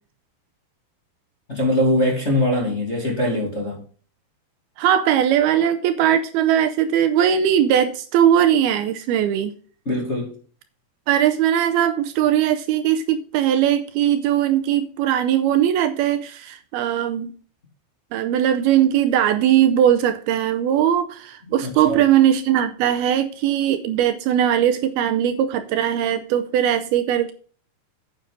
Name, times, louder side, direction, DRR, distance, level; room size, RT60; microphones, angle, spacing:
voice 1, 1.5-3.8 9.9-10.3 21.6-22.0, left 1 dB, 20° left, -1 dB, 2.2 m, -22 dB
voice 2, 4.8-9.5 11.1-17.3 18.1-27.3, right 10 dB, 80° right, 10 dB, 2.5 m, -19 dB
9.3 x 8.8 x 3.8 m, 0.41 s
omnidirectional pair, 4.7 m